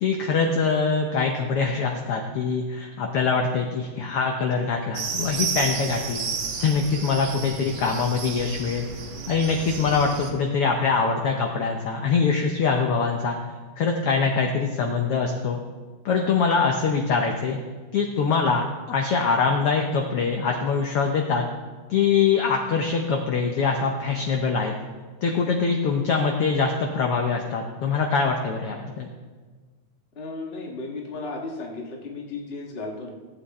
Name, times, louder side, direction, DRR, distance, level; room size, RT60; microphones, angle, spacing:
voice 1, 0.0-6.3 6.6-8.8 9.3-13.4 13.8-15.6 16.0-17.6 17.9-21.5 21.9-24.7 25.2-29.1, left 5 dB, 70° left, 2 dB, 1.3 m, -23 dB
sound 1, 4.9-10.3, right 5 dB, 60° right, 2.2 m, -32 dB
voice 2, 30.1-33.1, left 3 dB, 35° left, 0 dB, 1.0 m, -34 dB
16.5 x 8.4 x 4.3 m, 1.4 s
omnidirectional pair, 3.7 m